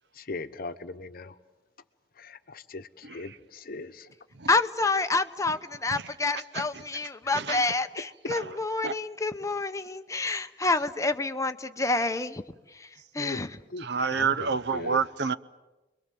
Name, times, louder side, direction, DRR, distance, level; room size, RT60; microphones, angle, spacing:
voice 1, 0.1-1.4 2.2-4.1 7.2-8.1 10.3-10.4 13.2-13.4 13.7-15.0, left 2 dB, 55° left, 1.1 m, -40 dB
voice 2, 4.5-12.4 13.1-13.5, left 3 dB, 20° left, 0.9 m, -28 dB
voice 3, 7.3-7.7 8.8-8.9 13.8-15.3, right 5 dB, 65° right, 0.8 m, -28 dB
30.0 x 22.5 x 7.7 m
head